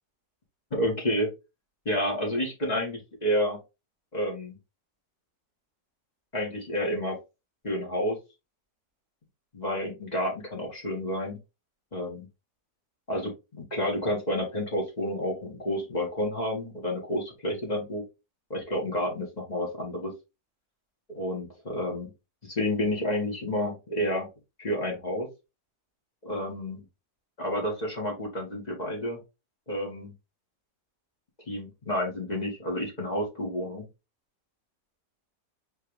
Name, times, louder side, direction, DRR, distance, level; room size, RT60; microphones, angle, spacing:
voice 1, 0.7-1.3 1.8-3.6 4.1-4.6 6.3-7.2 7.6-8.2 9.5-11.4 11.9-12.3 13.1-18.0 18.5-20.1 21.1-22.1 22.4-24.3 24.6-25.3 26.2-26.9 27.4-29.2 29.7-30.1 31.5-33.9, equal, 25° left, -1 dB, 1.7 m, -30 dB
4.5 x 3.4 x 3.2 m, 0.26 s
omnidirectional pair, 1.9 m